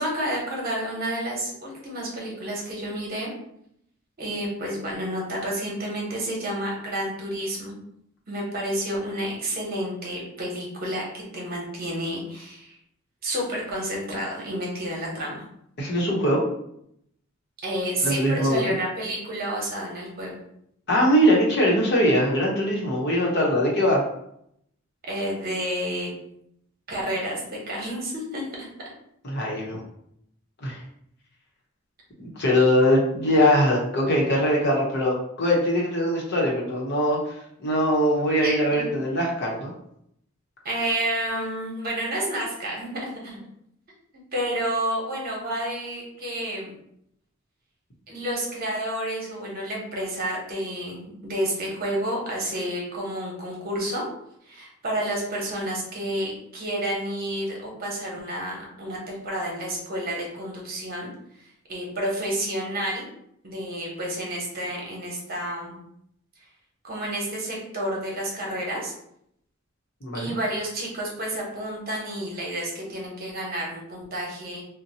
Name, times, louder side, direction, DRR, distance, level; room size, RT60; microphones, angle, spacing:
voice 1, 0.0-3.3 4.2-7.8 8.3-12.7 13.2-15.4 17.6-20.3 25.1-26.1 26.9-28.4 38.4-38.6 40.6-43.4 44.3-46.7 48.1-54.0 54.4-61.1 61.7-63.0 63.4-65.8 66.8-68.9 70.1-74.6, right 1 dB, 50° right, -2 dB, 1.0 m, -30 dB
voice 2, 15.8-16.4 18.0-18.6 20.9-24.0 29.2-29.8 30.6-30.8 32.2-37.3 37.6-39.7 70.0-70.4, equal, 55° left, -3 dB, 0.9 m, -22 dB
2.7 x 2.1 x 4.1 m, 0.74 s
head